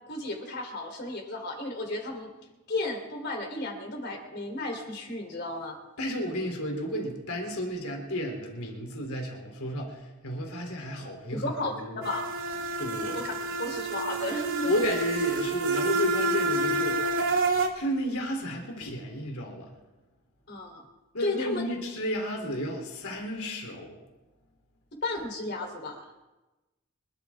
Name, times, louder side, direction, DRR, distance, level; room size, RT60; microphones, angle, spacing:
voice 1, 0.1-2.3 2.7-5.8 11.3-11.8 12.0-12.3 13.1-13.3 13.6-14.7 20.5-20.8 21.2-21.6 25.0-26.1, left 2 dB, 50° left, 3 dB, 3.5 m, -33 dB
voice 2, 6.0-12.0 12.8-13.2 14.7-17.0 17.7-19.7 21.1-24.0, equal, 85° left, 1 dB, 3.3 m, -32 dB
sound 1, 12.0-17.7, right 2 dB, 65° right, 2.3 m, -28 dB
26.0 x 13.0 x 3.6 m, 1.1 s
head